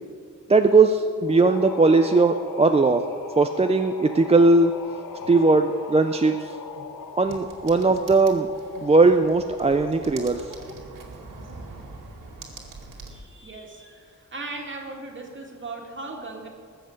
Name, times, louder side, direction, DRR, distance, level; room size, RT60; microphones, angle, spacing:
voice 1, 0.5-3.0 3.4-4.7 5.3-6.6 7.2-8.5 8.8-10.5, right 3 dB, 20° right, 6 dB, 0.4 m, -19 dB
sound 1, 1.2-11.0, left 5 dB, 85° left, 0.9 m, -40 dB
sound 2, 7.2-13.2, right 3 dB, 85° right, 2.3 m, -43 dB
voice 2, 13.1-16.5, right 3 dB, 35° right, 0 dB, 2.1 m, -38 dB
20.5 x 7.9 x 6.4 m, 2.2 s
wide cardioid pair, 165°, 32 cm